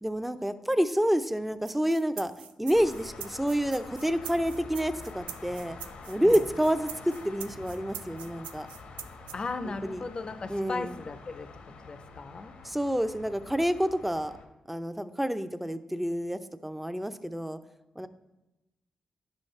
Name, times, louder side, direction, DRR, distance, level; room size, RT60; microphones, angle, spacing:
voice 1, 0.0-2.3 2.6-5.8 6.1-8.7 9.8-10.0 10.5-10.9 12.6-14.3 14.7-17.6 18.0-18.1, equal, 5° right, 10 dB, 0.6 m, -28 dB
sound 1, 1.7-9.4, right 8 dB, 90° right, 0.4 m, -43 dB
sound 2, 2.7-14.5, left 3 dB, 80° left, 1.0 m, -47 dB
voice 2, 9.3-11.5 11.8-12.6, left 3 dB, 45° left, 10 dB, 0.6 m, -37 dB
10.5 x 6.3 x 3.3 m, 1.0 s
supercardioid pair, 50°, 2 cm